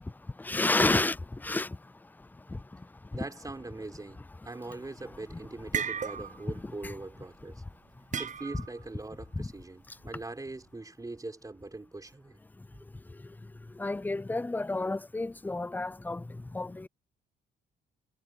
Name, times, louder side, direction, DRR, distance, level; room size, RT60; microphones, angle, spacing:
voice 1, 0.4-1.8 2.5-2.9 6.8-6.9 9.4-9.5 13.1-13.4 13.7-16.9, left 2 dB, 10° left, 0.4 m, -31 dB
voice 2, 3.1-7.6 8.2-12.4, right 2 dB, 15° right, 4.7 m, -42 dB
sound 1, 4.9-5.2 5.5-6.6 6.8-7.1 8.1-8.8, right 7 dB, 40° right, 0.8 m, -34 dB
cardioid pair, 90°, 20 cm